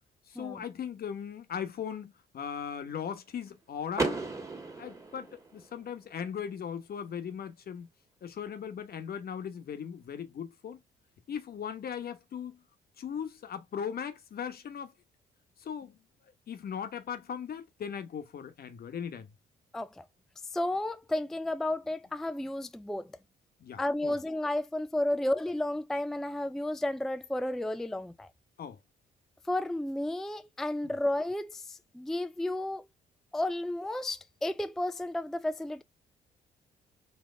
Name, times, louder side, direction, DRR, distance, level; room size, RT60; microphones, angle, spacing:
voice 1, 0.3-4.2 4.8-7.9 8.2-10.8 11.3-12.6 13.0-14.9 15.6-16.0 16.5-19.3 23.6-24.2 28.6-28.8, left 7 dB, 55° left, 1.1 m, -38 dB
Car / Door, 3.9-5.9, right 3 dB, 15° right, 1.8 m, -35 dB
voice 2, 19.7-20.0 20.5-23.1 23.8-28.3 29.5-32.9 33.3-35.8, left 1 dB, ahead, 0.4 m, -32 dB
4.4 x 2.8 x 3.3 m
supercardioid pair, 60°, 19 cm